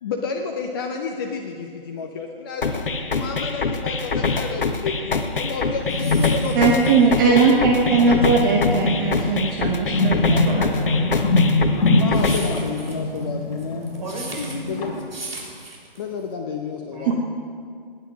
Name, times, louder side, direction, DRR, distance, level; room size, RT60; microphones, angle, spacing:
voice 1, 0.0-7.4 7.8-8.4 12.0-14.0 14.7-14.9 16.0-17.1, left 5 dB, 25° left, 2 dB, 0.6 m, -30 dB
sound 1, 2.6-12.6, left 4 dB, 60° left, 1.1 m, -25 dB
sound 2, 5.6-16.3, right 2 dB, 75° right, 3.5 m, -39 dB
sound 3, 5.8-15.1, left 2 dB, 40° left, 2.8 m, -24 dB
voice 2, 6.5-10.5 17.1-17.2, right 4 dB, 20° right, 0 dB, 1.0 m, -19 dB
voice 3, 10.5-11.2 13.9-14.8 16.9-17.1, equal, 45° right, -1 dB, 3.9 m, -33 dB
18.0 x 9.5 x 6.1 m, 2.2 s
figure-of-eight pair, 140°, 30 cm